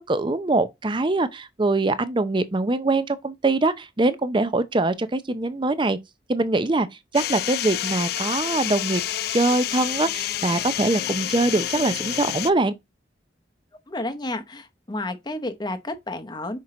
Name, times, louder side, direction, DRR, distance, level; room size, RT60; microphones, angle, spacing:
voice 1, 0.0-6.0 6.3-6.9 7.1-9.0 9.3-12.7, right 2 dB, 25° right, 0.6 m, -23 dB
sound 1, 7.1-12.5, left 12 dB, 60° left, 0.3 m, -28 dB
voice 2, 13.9-16.6, left 2 dB, 25° left, 0.8 m, -31 dB
5.9 x 4.4 x 3.8 m
head